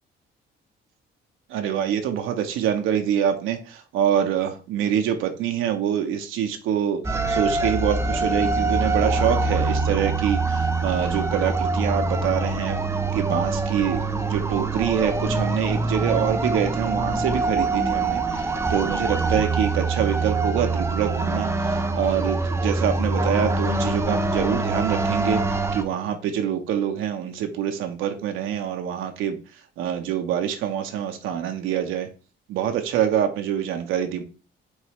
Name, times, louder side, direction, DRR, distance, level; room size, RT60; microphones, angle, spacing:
voice 1, 1.5-12.8 13.1-29.4 29.8-32.1 32.5-34.2, right 9 dB, 90° right, 0.6 m, -25 dB
sound 1, 7.0-25.8, right 3 dB, 15° right, 0.5 m, -24 dB
4.7 x 3.1 x 2.9 m
cardioid pair, 90°, 20 cm